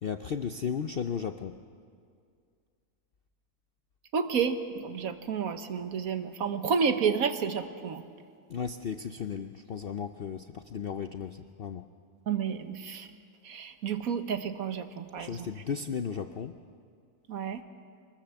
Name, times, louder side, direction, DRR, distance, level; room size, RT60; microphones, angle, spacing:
voice 1, 0.0-1.6 8.5-11.9 15.2-16.5, left 7 dB, 60° left, 8 dB, 0.6 m, -35 dB
voice 2, 4.1-8.0 12.3-13.1 13.4-15.5 17.3-17.6, right 6 dB, 65° right, 9 dB, 1.4 m, -30 dB
24.0 x 20.5 x 7.1 m, 2.2 s
omnidirectional pair, 1.7 m